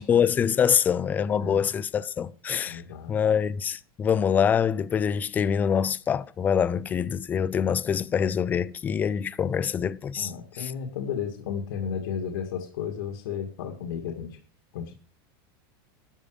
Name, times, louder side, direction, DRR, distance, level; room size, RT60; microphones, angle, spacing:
voice 1, 0.0-2.8 3.1-10.3 10.6-10.7, left 7 dB, 15° left, 0.4 m, -25 dB
voice 2, 1.4-1.7 2.7-3.1 10.2-14.4 14.7-14.9, left 7 dB, 75° left, 2.3 m, -33 dB
12.5 x 8.9 x 5.0 m
supercardioid pair, 170°, 12 cm